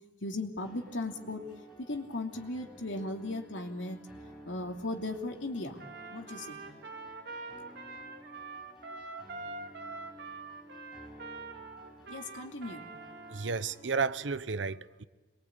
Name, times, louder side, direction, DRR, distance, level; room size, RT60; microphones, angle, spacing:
voice 1, 0.2-1.4 1.8-4.0 4.5-5.8 6.1-6.6 12.1-12.9, left 2 dB, 80° left, 2.7 m, -37 dB
sound 1, 0.6-14.3, right 1 dB, ahead, 6.7 m, -54 dB
Trumpet, 5.8-13.6, right 3 dB, 60° right, 2.5 m, -44 dB
voice 2, 13.3-15.0, right 5 dB, 75° right, 0.8 m, -32 dB
27.0 x 22.0 x 8.8 m
head